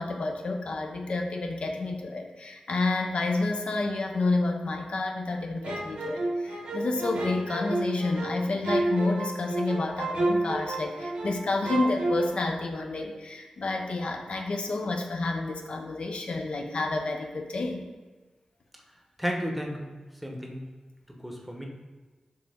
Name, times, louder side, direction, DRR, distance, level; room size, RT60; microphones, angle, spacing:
voice 1, 0.0-17.8, left 3 dB, 65° left, 2 dB, 0.4 m, -29 dB
sound 1, 5.6-11.4 11.6-12.3, right 2 dB, 80° right, 0.9 m, -30 dB
voice 2, 19.2-19.9 20.2-20.6 21.1-21.7, equal, 5° right, 1 dB, 0.8 m, -33 dB
4.3 x 2.8 x 3.5 m, 1.3 s
cardioid pair, 50°, 2 cm